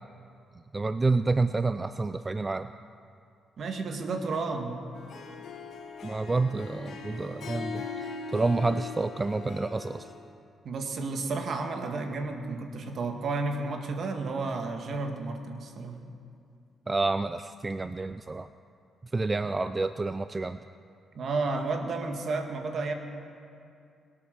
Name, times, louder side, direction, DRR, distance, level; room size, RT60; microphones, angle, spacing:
voice 1, 0.7-2.7 6.0-8.0 8.3-10.1 16.9-18.5 19.1-20.6, right 3 dB, 25° right, 11 dB, 0.4 m, -28 dB
voice 2, 3.6-4.8 10.6-16.0 21.1-22.9, right 3 dB, 60° right, 5 dB, 1.7 m, -32 dB
Harp, 4.9-10.3, left 5 dB, 70° left, 1.4 m, -40 dB
22.5 x 8.7 x 6.5 m, 2.4 s
cardioid pair, 95°, 0 cm